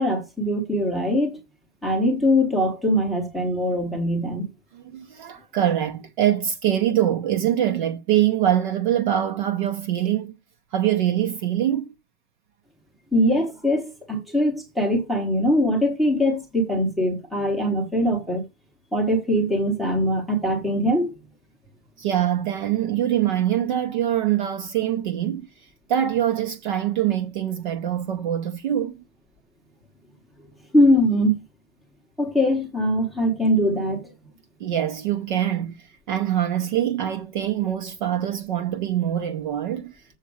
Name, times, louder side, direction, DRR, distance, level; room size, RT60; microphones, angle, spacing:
voice 1, 0.0-1.4 1.8-4.5 13.1-18.4 18.9-21.1 30.7-31.4 32.2-34.1, equal, ahead, 0.9 m, -22 dB
voice 2, 4.7-10.3 10.7-11.9 22.0-25.5 25.9-29.0 34.6-40.0, right 11 dB, 35° right, 0.7 m, -24 dB
7.3 x 6.7 x 6.1 m
supercardioid pair, 175°, 44 cm